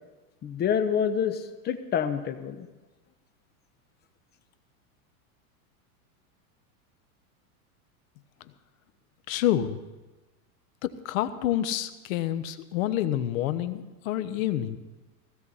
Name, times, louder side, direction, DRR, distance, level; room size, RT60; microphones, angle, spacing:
voice 1, 0.4-2.7, left 7 dB, 20° left, 8 dB, 0.9 m, -27 dB
voice 2, 9.3-9.8 10.8-14.8, left 12 dB, 60° left, 12 dB, 1.1 m, -28 dB
16.5 x 15.5 x 4.2 m, 1.1 s
supercardioid pair, 145°, 45 cm